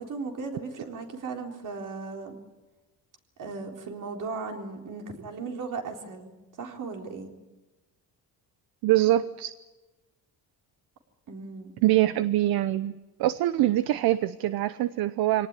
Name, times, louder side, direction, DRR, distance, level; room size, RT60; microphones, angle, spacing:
voice 1, 0.0-2.4 3.4-6.3 6.6-7.3 11.3-11.7, right 4 dB, 60° right, 3 dB, 4.0 m, -36 dB
voice 2, 8.8-9.5 11.8-12.9 13.2-15.5, right 14 dB, 80° right, 14 dB, 0.8 m, -24 dB
25.0 x 18.5 x 9.8 m, 1.1 s
cardioid pair, 130°, 36 cm